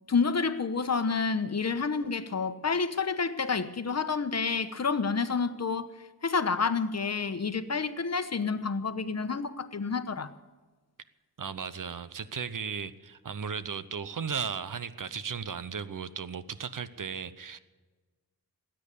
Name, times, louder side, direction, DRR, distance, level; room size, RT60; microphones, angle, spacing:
voice 1, 0.1-5.9 6.2-10.3, left 5 dB, 45° left, 1.1 m, -29 dB
voice 2, 11.4-17.6, right 6 dB, 60° right, 0.9 m, -36 dB
19.0 x 9.1 x 8.3 m
cardioid pair, 65°, 36 cm